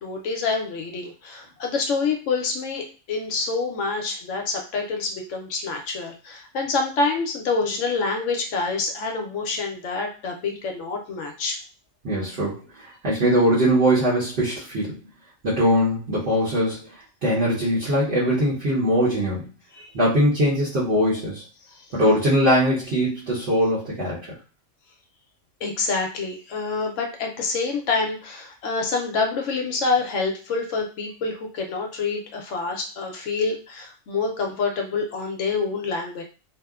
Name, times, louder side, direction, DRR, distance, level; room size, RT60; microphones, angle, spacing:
voice 1, 0.0-11.6 25.6-36.2, left 4 dB, 70° left, 2 dB, 0.9 m, -27 dB
voice 2, 12.0-15.0 15.4-16.9 17.2-21.4 21.9-24.2, equal, 50° right, -8 dB, 1.0 m, -21 dB
2.8 x 2.1 x 2.3 m, 0.36 s
omnidirectional pair, 1.5 m